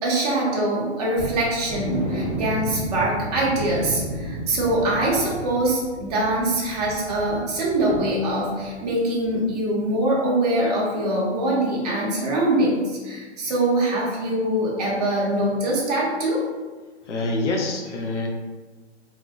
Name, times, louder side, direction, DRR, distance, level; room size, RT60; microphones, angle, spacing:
voice 1, 0.0-16.4, right 1 dB, 35° right, -4 dB, 0.6 m, -23 dB
sound 1, 1.2-8.9 9.2-9.4 9.8-9.9, right 1 dB, 15° left, 0.6 m, -33 dB
voice 2, 17.1-18.3, left 2 dB, 80° left, 0 dB, 0.6 m, -26 dB
2.6 x 2.1 x 2.3 m, 1.3 s
hypercardioid pair, 140°, 35 cm